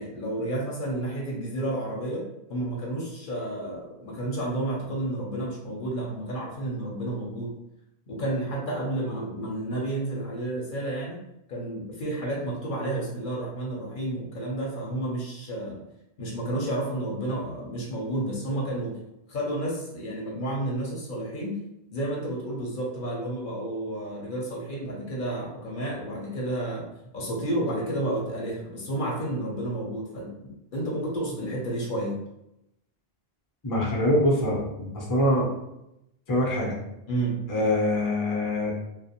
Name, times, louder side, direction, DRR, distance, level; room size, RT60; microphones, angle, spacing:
voice 1, 0.0-7.5 8.1-11.2 11.5-15.8 16.2-19.0 19.3-21.6 21.9-26.9 27.1-32.2 37.1-37.4, right 1 dB, 55° left, -3 dB, 0.7 m, -31 dB
voice 2, 33.6-35.5 36.3-36.8 37.5-38.7, left 1 dB, 30° left, -3 dB, 0.4 m, -24 dB
2.4 x 2.1 x 2.8 m, 0.85 s
omnidirectional pair, 1.1 m